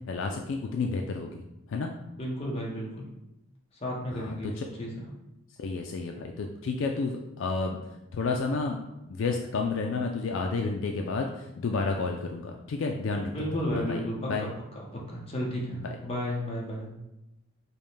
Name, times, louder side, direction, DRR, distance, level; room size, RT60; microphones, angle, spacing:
voice 1, 0.1-1.4 1.7-1.9 4.1-4.6 5.6-7.8 8.1-13.3 13.7-14.0 14.3-14.5 15.8-15.9, left 4 dB, 65° left, 2 dB, 0.3 m, -31 dB
voice 2, 2.2-3.1 3.8-5.1 13.3-14.5 14.7-16.9, equal, 30° left, -3 dB, 0.8 m, -33 dB
5.3 x 2.1 x 3.2 m, 0.92 s
head